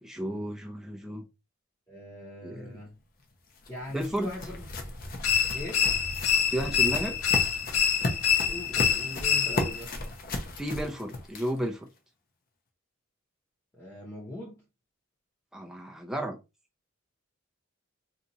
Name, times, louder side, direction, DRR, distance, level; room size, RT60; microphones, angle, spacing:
voice 1, 0.0-1.3 2.4-2.8 3.9-4.3 6.5-7.2 10.6-11.9 15.5-16.4, right 1 dB, ahead, 0.4 m, -33 dB
voice 2, 1.9-3.0 3.7-4.7 5.5-5.9 8.3-9.9 13.8-14.6, left 1 dB, 15° left, 0.8 m, -40 dB
sound 1, 3.2-11.7, left 2 dB, 45° left, 0.7 m, -36 dB
sound 2, 5.2-9.8, left 7 dB, 85° left, 0.6 m, -26 dB
2.7 x 2.4 x 4.0 m
head